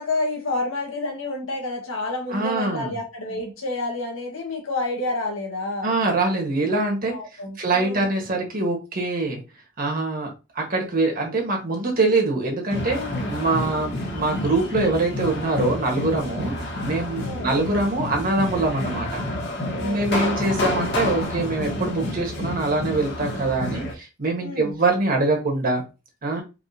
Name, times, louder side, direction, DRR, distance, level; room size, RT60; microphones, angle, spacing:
voice 1, 0.0-6.0 7.1-8.1 12.9-13.3 17.2-17.5 19.7-20.5 24.4-24.7, left 2 dB, 85° left, 1.6 m, -29 dB
voice 2, 2.3-2.9 5.8-7.2 7.6-9.4 9.8-13.0 13.3-16.5 16.8-19.2 19.8-25.8 26.2-26.4, right 2 dB, 45° right, 1.5 m, -24 dB
sound 1, 12.7-23.9, left 1 dB, 60° left, 1.5 m, -29 dB
4.9 x 3.1 x 2.8 m
head